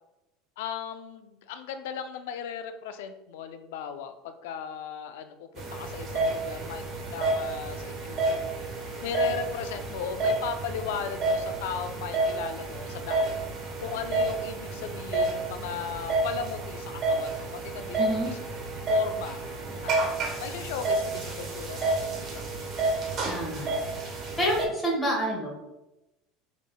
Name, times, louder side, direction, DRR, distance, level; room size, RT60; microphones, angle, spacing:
voice 1, 0.6-6.8 7.1-8.7 9.0-13.3 13.8-19.4 19.8-19.9 20.4-22.5, left 7 dB, 80° left, 9 dB, 0.4 m, -37 dB
sound 1, 5.6-24.7, right 2 dB, 40° right, 1.0 m, -30 dB
voice 2, 18.0-18.3 23.3-23.7 24.1-25.5, equal, 15° left, -3 dB, 1.4 m, -28 dB
4.8 x 3.6 x 2.2 m, 0.97 s
supercardioid pair, 115°, 0 cm